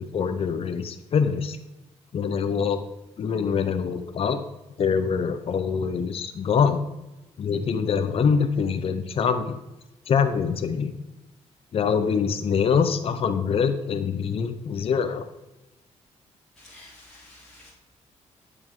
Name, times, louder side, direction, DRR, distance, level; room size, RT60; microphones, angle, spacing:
voice 1, 0.0-1.6 2.1-2.8 3.2-4.4 4.8-6.8 7.4-9.6 10.1-11.0 11.7-15.3, left 6 dB, 50° left, 8 dB, 0.7 m, -24 dB
voice 2, 16.6-17.7, left 2 dB, 5° left, -10 dB, 3.6 m, -50 dB
9.8 x 7.7 x 3.8 m, 1.0 s
cardioid pair, 100°, 12 cm